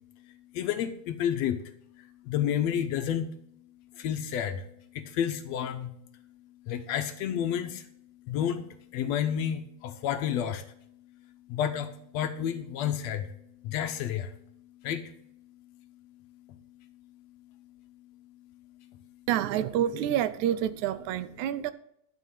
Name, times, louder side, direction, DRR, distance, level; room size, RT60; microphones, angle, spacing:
voice 1, 0.6-1.6 2.3-3.3 4.0-4.6 5.0-5.9 6.7-7.7 8.3-8.6 8.9-10.6 11.5-11.9 12.1-13.2 13.7-14.3 14.9-15.0, left 9 dB, 75° left, 1.7 m, -29 dB
voice 2, 19.3-21.7, right 11 dB, 80° right, 2.0 m, -28 dB
12.0 x 5.4 x 8.2 m
omnidirectional pair, 3.4 m